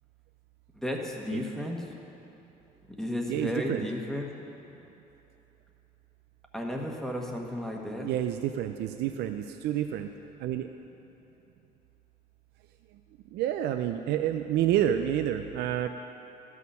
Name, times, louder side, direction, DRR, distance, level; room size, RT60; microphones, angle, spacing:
voice 1, 0.7-1.9 3.0-4.3 6.5-8.1, left 1 dB, 5° left, 0 dB, 1.2 m, -33 dB
voice 2, 3.3-3.9 8.0-10.1 10.4-10.7 12.9-13.0 13.3-15.9, right 11 dB, 80° right, 7 dB, 0.4 m, -29 dB
13.0 x 6.4 x 5.5 m, 3.0 s
cardioid pair, 110°, 17 cm